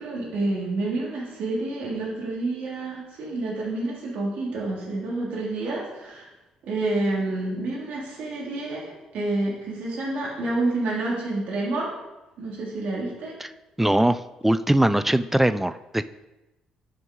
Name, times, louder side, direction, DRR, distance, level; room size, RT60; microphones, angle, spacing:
voice 1, 0.0-6.3 6.6-11.9 12.4-13.3, right 2 dB, 65° right, -4 dB, 2.9 m, -28 dB
voice 2, 13.8-16.1, right 1 dB, 10° right, 13 dB, 0.4 m, -21 dB
9.3 x 5.3 x 3.8 m, 1.0 s
hypercardioid pair, 50°, 3 cm